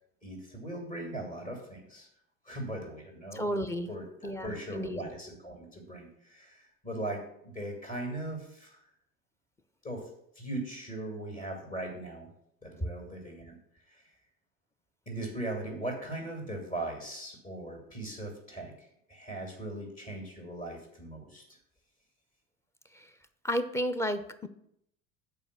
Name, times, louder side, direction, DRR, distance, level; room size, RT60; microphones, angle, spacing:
voice 1, 0.2-2.1 2.4-3.6 3.9-4.1 4.4-8.8 9.8-10.1 10.3-12.3 12.6-13.6 13.9-14.1 15.1-21.6, right 1 dB, 20° left, 0 dB, 2.6 m, -39 dB
voice 2, 3.3-3.9 4.2-5.0 22.9-23.1 23.4-24.5, equal, 5° left, 11 dB, 0.7 m, -32 dB
7.2 x 5.1 x 6.9 m, 0.74 s
figure-of-eight pair, 70°, 39 cm